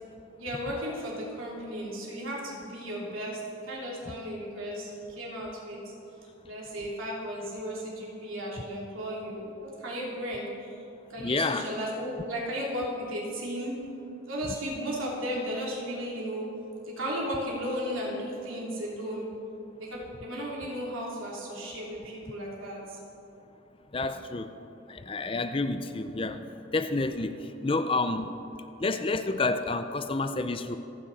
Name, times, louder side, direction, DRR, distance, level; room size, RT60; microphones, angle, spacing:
voice 1, 0.4-5.8 6.5-10.8 11.1-13.8 14.3-16.5 16.8-19.3 19.8-23.0, equal, 90° right, -4 dB, 3.3 m, -35 dB
voice 2, 11.2-11.7 23.9-24.5 24.9-26.4 26.7-28.4 28.8-30.8, left 3 dB, 25° left, 9 dB, 0.5 m, -29 dB
27.0 x 9.9 x 4.2 m, 2.8 s
head